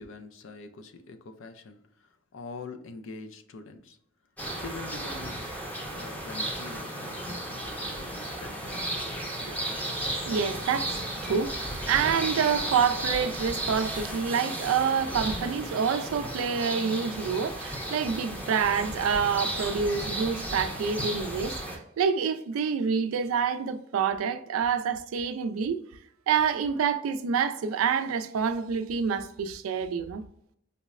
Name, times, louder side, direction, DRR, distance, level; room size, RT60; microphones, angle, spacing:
voice 1, 0.0-4.0 4.6-5.5 5.9-9.3, left 3 dB, 70° left, 0.4 m, -44 dB
sound 1, 4.4-21.8, right 1 dB, 10° left, 0.7 m, -34 dB
voice 2, 9.2-25.8 26.3-30.3, right 6 dB, 90° right, 0.3 m, -27 dB
5.3 x 2.0 x 2.4 m
head